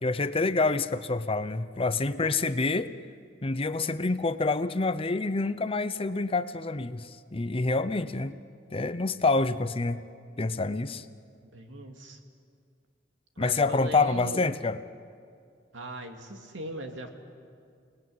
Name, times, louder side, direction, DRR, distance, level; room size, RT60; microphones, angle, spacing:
voice 1, 0.0-2.9 3.4-8.3 8.7-10.0 10.4-11.0 13.4-14.8, left 3 dB, 30° left, 13 dB, 0.7 m, -27 dB
voice 2, 11.4-12.2 13.4-14.5 15.7-17.1, right 1 dB, 85° right, 3 dB, 2.6 m, -39 dB
29.5 x 19.0 x 9.5 m, 2.3 s
head